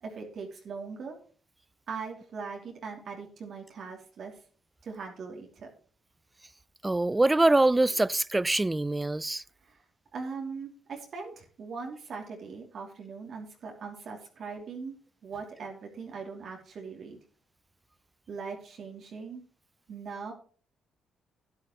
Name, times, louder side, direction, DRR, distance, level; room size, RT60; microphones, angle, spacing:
voice 1, 0.0-1.2 1.9-4.4 4.8-5.7 9.6-9.8 10.1-14.9 15.2-17.2 18.3-19.4 19.9-20.3, right 5 dB, 60° right, 2.8 m, -40 dB
voice 2, 6.8-9.4, right 2 dB, 15° right, 0.4 m, -24 dB
12.0 x 10.5 x 3.1 m
cardioid pair, 90°, 0 cm